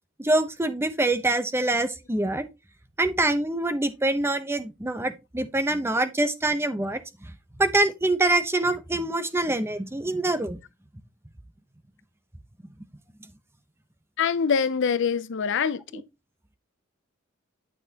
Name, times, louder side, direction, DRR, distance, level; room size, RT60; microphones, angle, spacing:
voice 1, 0.2-2.5 3.0-7.0 7.6-10.6 15.9-16.0, right 2 dB, 10° right, 0.8 m, -25 dB
voice 2, 14.2-16.0, left 6 dB, 65° left, 0.5 m, -24 dB
9.1 x 6.1 x 2.9 m
head